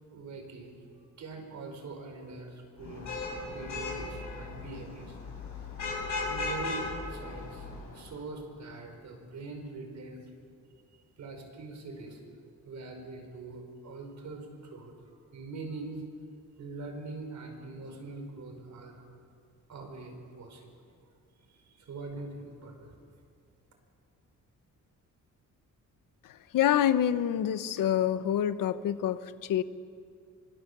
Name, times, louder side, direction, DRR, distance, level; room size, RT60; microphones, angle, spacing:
voice 1, 0.1-0.8 1.2-3.1 3.5-5.2 6.3-10.3 11.2-12.2 12.6-16.0 16.6-19.0 19.7-20.7 21.5-22.9, right 3 dB, 60° right, 4 dB, 5.1 m, -43 dB
Vehicle horn car horn honking / Traffic noise roadway noise, 2.8-8.1, left 3 dB, 65° left, 7.1 m, -37 dB
voice 2, 26.5-29.6, left 10 dB, 90° left, 13 dB, 1.0 m, -27 dB
26.0 x 23.5 x 6.9 m, 2.3 s
cardioid pair, 140°, 32 cm